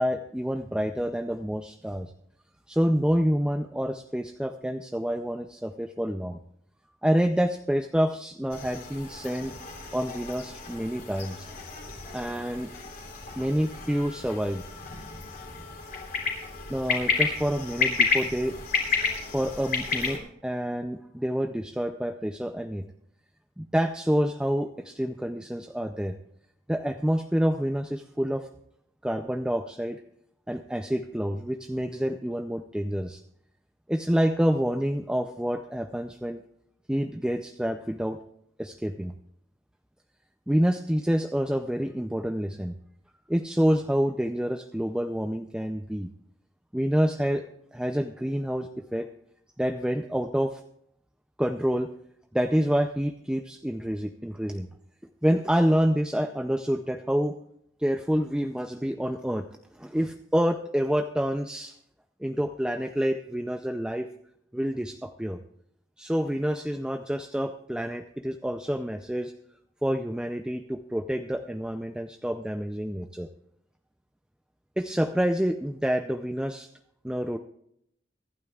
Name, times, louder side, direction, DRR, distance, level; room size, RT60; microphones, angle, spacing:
voice 1, 0.0-2.1 2.7-6.4 7.0-9.5 9.9-11.5 12.1-12.7 13.4-14.6 16.7-18.5 19.3-22.8 23.6-26.1 26.7-28.5 29.0-30.0 30.5-33.2 33.9-36.4 36.9-38.2 38.6-39.1 40.5-42.7 43.3-46.1 46.7-47.4 47.7-49.1 49.6-50.6 51.4-51.9 52.3-54.7 55.2-57.3 57.8-59.5 59.7-61.7 62.2-64.1 64.5-65.4 66.0-69.3 69.8-73.3 74.8-76.7 77.0-77.4, equal, 5° right, 6 dB, 0.5 m, -27 dB
sound 1, 8.5-20.2, left 4 dB, 50° left, 3.6 m, -31 dB
24.0 x 12.0 x 2.4 m, 0.72 s
head